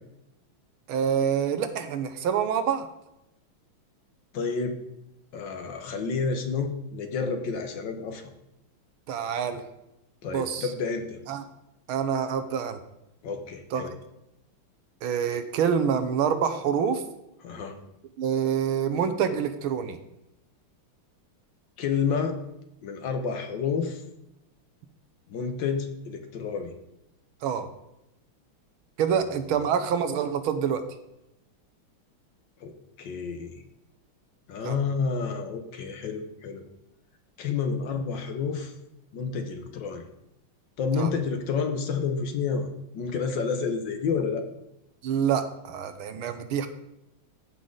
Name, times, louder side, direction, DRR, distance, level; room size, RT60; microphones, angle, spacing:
voice 1, 0.9-2.9 9.1-9.6 10.3-10.7 11.3-11.4 11.9-12.8 13.7-13.8 15.0-17.0 18.2-20.0 27.4-27.7 29.0-30.8 34.6-34.8 40.9-41.1 45.0-46.7, right 7 dB, 75° right, 9 dB, 1.6 m, -26 dB
voice 2, 4.3-4.8 5.3-8.2 10.2-11.2 13.2-13.9 17.4-17.7 21.8-22.4 22.8-24.0 25.3-26.7 32.6-32.7 33.0-33.6 34.5-36.6 37.4-38.7 39.1-40.0 40.8-42.7 42.9-44.4, left 5 dB, 65° left, 6 dB, 1.5 m, -29 dB
15.0 x 5.8 x 3.9 m, 0.88 s
omnidirectional pair, 2.4 m